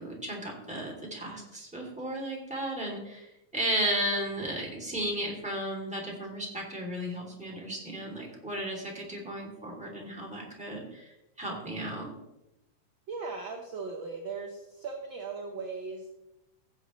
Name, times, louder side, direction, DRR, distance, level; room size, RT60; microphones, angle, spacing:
voice 1, 0.0-11.1 11.4-12.1, right 1 dB, ahead, -2 dB, 2.4 m, -34 dB
voice 2, 13.1-16.2, right 4 dB, 60° right, 1 dB, 1.3 m, -38 dB
16.0 x 7.6 x 3.1 m, 0.90 s
omnidirectional pair, 3.4 m